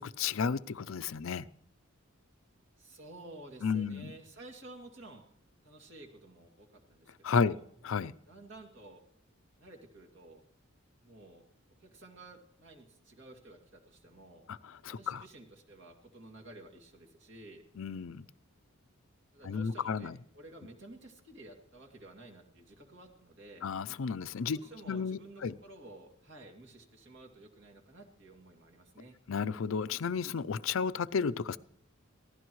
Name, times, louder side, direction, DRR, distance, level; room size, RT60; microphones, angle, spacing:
voice 1, 0.0-1.4 3.6-4.1 7.2-7.6 7.8-8.1 14.5-14.6 14.8-15.2 17.8-18.2 19.4-20.1 23.6-24.6 24.9-25.5 29.3-31.6, left 5 dB, 75° left, 0.5 m, -32 dB
voice 2, 2.8-5.2 5.6-7.7 8.3-9.0 9.6-10.4 11.0-11.4 11.8-14.5 14.9-17.6 19.3-23.7 24.5-29.2, right 2 dB, 60° right, 2.5 m, -52 dB
22.5 x 16.0 x 3.1 m
head